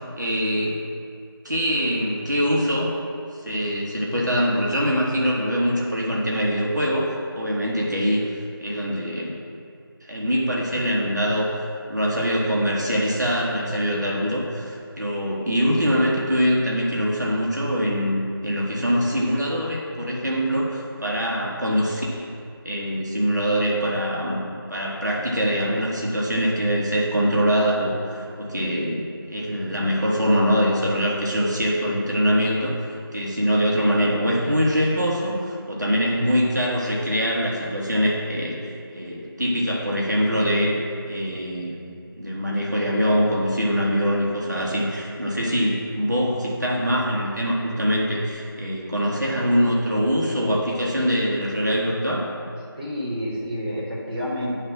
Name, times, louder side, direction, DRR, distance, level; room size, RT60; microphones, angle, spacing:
voice 1, 0.2-0.8 1.4-2.9 3.4-7.1 7.3-8.2 8.6-9.3 10.1-11.5 11.9-22.3 22.6-24.4 24.7-32.7 33.1-40.8 41.1-41.9 42.2-52.3, equal, 50° right, -4 dB, 1.3 m, -23 dB
voice 2, 52.8-54.6, equal, 20° right, -12 dB, 1.1 m, -29 dB
9.1 x 3.4 x 6.1 m, 2.4 s
figure-of-eight pair, 175°, 13 cm